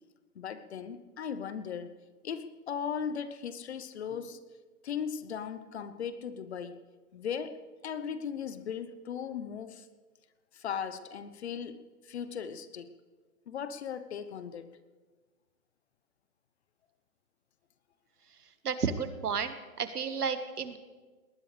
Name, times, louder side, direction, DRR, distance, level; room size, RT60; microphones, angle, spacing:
voice 1, 0.3-1.9 2.2-4.4 4.8-6.8 7.1-9.9 10.5-12.9 13.5-14.8, left 7 dB, 45° left, 12 dB, 1.0 m, -38 dB
voice 2, 18.6-20.8, right 6 dB, 85° right, 10 dB, 1.7 m, -32 dB
21.0 x 19.5 x 3.4 m, 1.4 s
hypercardioid pair, 155°, 45 cm